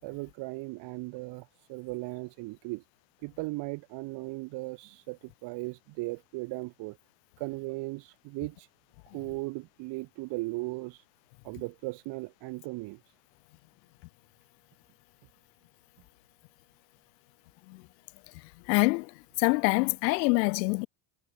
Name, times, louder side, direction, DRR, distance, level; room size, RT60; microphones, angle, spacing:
voice 1, 0.0-2.8 3.2-7.0 7.4-8.7 9.1-11.0 11.4-13.0, right 24 dB, 55° right, 5.0 m, -37 dB
voice 2, 18.7-19.1 19.4-20.9, left 27 dB, 85° left, 1.7 m, -25 dB
cardioid pair, 160°, 49 cm